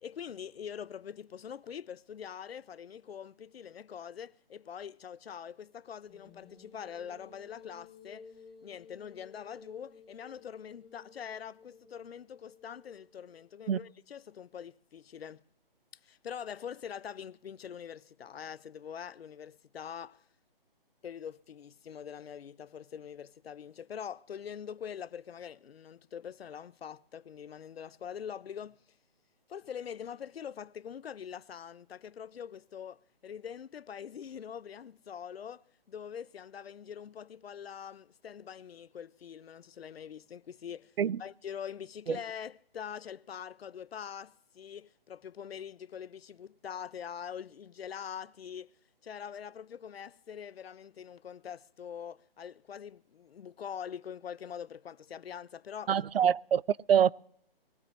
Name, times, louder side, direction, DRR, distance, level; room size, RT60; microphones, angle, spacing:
voice 1, 0.0-8.3 8.6-15.4 16.0-20.2 21.0-28.8 29.5-40.9 41.2-48.7 49.0-55.9, left 8 dB, 85° left, 0.6 m, -44 dB
sound 1, 6.1-13.5, left 5 dB, ahead, 0.9 m, -55 dB
voice 2, 55.9-57.1, right 8 dB, 75° right, 0.5 m, -25 dB
21.5 x 16.5 x 3.1 m
hypercardioid pair, 170°, 29 cm